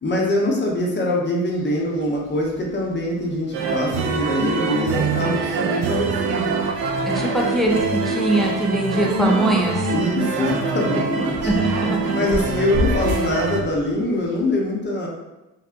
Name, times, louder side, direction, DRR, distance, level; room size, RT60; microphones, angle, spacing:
voice 1, 0.0-6.5 9.9-11.5 12.1-15.1, left 1 dB, 25° left, -2 dB, 0.7 m, -23 dB
sound 1, 1.4-14.5, left 3 dB, 90° right, 0.9 m, -35 dB
sound 2, 3.5-13.6, right 4 dB, 65° right, 0.5 m, -24 dB
voice 2, 7.1-9.9 11.4-12.1, right 1 dB, ahead, 0 dB, 0.4 m, -21 dB
2.6 x 2.1 x 2.4 m, 1.0 s
hypercardioid pair, 45°, 41 cm